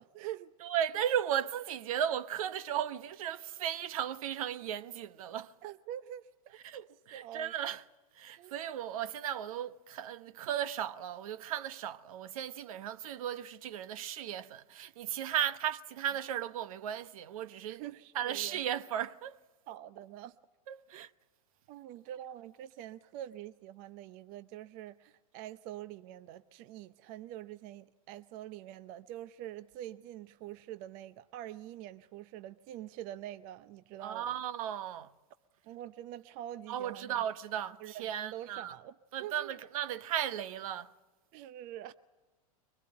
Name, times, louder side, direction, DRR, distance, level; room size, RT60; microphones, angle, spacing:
voice 1, 0.0-0.5 5.6-6.6 7.1-7.5 8.4-8.6 17.7-18.6 19.7-20.4 20.9-21.1 21.7-34.4 35.6-37.2 37.8-39.5 41.3-41.9, right 12 dB, 45° right, 0.7 m, -45 dB
voice 2, 0.6-5.5 6.6-7.8 8.1-17.8 18.1-19.4 20.7-21.1 34.0-35.1 36.7-38.7 39.1-40.9, right 10 dB, 70° right, 1.0 m, -36 dB
24.0 x 19.5 x 8.8 m
hypercardioid pair, 115°, 19 cm